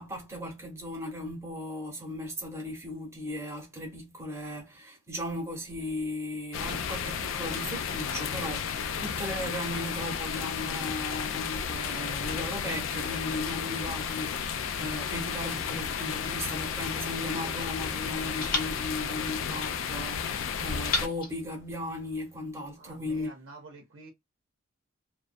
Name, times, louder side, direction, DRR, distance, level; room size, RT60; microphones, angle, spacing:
voice 1, 0.0-23.3, left 1 dB, 15° right, 0.9 m, -37 dB
sound 1, 6.5-21.1, left 7 dB, 75° left, 0.3 m, -33 dB
sound 2, 20.8-22.4, left 3 dB, 45° left, 0.8 m, -37 dB
voice 2, 22.7-24.1, right 3 dB, 85° right, 0.6 m, -49 dB
2.2 x 2.1 x 2.5 m
head